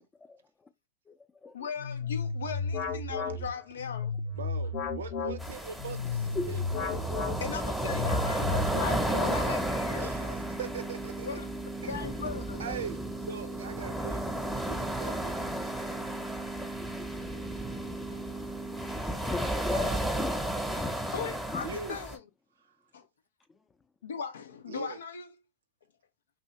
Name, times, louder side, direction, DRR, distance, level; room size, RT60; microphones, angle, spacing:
voice 1, 1.5-4.1 7.4-10.4 11.2-11.5 11.9-12.6 14.0-14.1 18.1-18.2 21.1-22.3 22.9-23.1 24.0-25.4, left 6 dB, 80° left, 0.4 m, -38 dB
sound 1, 1.8-9.8, left 4 dB, 50° left, 0.8 m, -33 dB
voice 2, 4.3-7.1 10.0-11.3 11.8-11.9 12.6-13.0 13.3-14.2 14.6-15.4 19.7-20.0 21.6-22.0 24.7-25.0, right 6 dB, 80° right, 0.5 m, -41 dB
sound 2, 5.4-22.2, right 1 dB, ahead, 0.8 m, -34 dB
voice 3, 6.3-7.0 9.5-9.6 13.0-13.1 15.0-15.2 15.5-15.9 17.0-17.2 19.3-20.9 21.5-21.6, left 4 dB, 20° left, 0.4 m, -38 dB
sound 3, 9.0-19.0, right 2 dB, 30° right, 0.6 m, -40 dB
2.8 x 2.6 x 3.1 m
hypercardioid pair, 95°, 0 cm